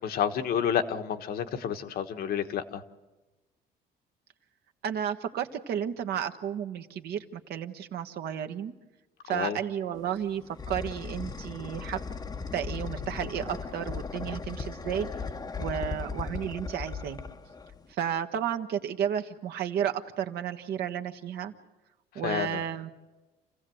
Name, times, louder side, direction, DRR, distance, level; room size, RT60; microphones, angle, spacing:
voice 1, 0.0-2.8 9.3-9.6 15.8-16.0 22.2-22.6, left 8 dB, 65° left, 7 dB, 1.4 m, -30 dB
voice 2, 4.8-8.7 9.3-12.0 12.5-15.1 15.6-17.2 17.9-21.5 22.1-22.9, right 9 dB, 70° right, 6 dB, 1.3 m, -32 dB
sound 1, 10.0-17.9, left 5 dB, 25° left, 0.8 m, -37 dB
28.5 x 15.5 x 7.8 m, 1.2 s
cardioid pair, 110°, 17 cm